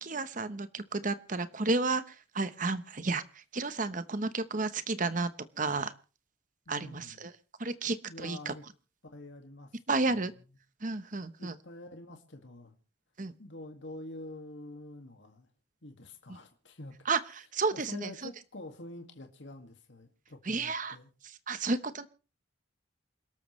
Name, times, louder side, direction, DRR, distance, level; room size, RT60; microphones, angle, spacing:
voice 1, 0.0-5.3 5.6-5.9 6.7-7.3 7.6-8.5 9.9-10.3 10.8-11.6 13.2-13.3 17.1-18.1 20.4-21.0 21.5-22.1, right 3 dB, 40° right, 12 dB, 1.0 m, -32 dB
voice 2, 6.7-7.2 8.1-8.6 9.0-10.4 11.4-12.8 13.4-15.5 15.8-17.0 17.7-21.1, left 1 dB, 65° left, 4 dB, 2.1 m, -47 dB
28.0 x 13.0 x 3.2 m, 0.36 s
head